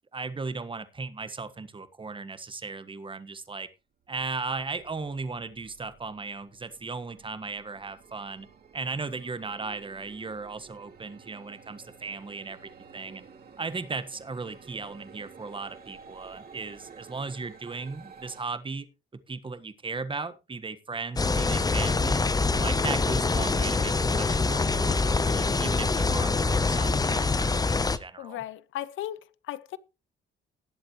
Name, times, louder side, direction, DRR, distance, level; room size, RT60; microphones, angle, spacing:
voice 1, 0.1-3.7 4.1-8.5 8.7-13.2 13.6-18.9 19.3-22.2 22.6-28.4, right 4 dB, 25° right, 1.4 m, -36 dB
sound 1, 3.4-3.6 4.0-18.4, right 5 dB, 50° right, 3.0 m, -52 dB
sound 2, 21.2-28.0, left 3 dB, 20° left, 0.7 m, -25 dB
voice 2, 28.2-29.8, left 12 dB, 80° left, 0.8 m, -36 dB
19.0 x 7.8 x 3.1 m
cardioid pair, 90°, 20 cm